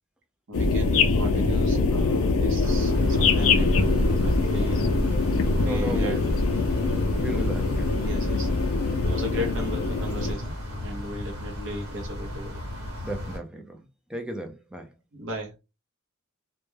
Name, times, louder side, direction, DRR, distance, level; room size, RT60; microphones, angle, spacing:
sound 1, 0.5-10.3, left 3 dB, 65° left, 0.4 m, -23 dB
voice 1, 0.5-3.9 4.2-4.8 5.5-6.2 7.3-7.7 8.0-8.5 9.0-12.6 15.1-15.6, equal, 60° right, 0.6 m, -36 dB
sound 2, 2.6-13.4, left 1 dB, 85° right, 1.1 m, -35 dB
voice 2, 5.6-6.2 7.2-8.0 8.9-9.0 13.0-14.9, right 1 dB, 5° right, 0.4 m, -35 dB
2.1 x 2.1 x 3.1 m
head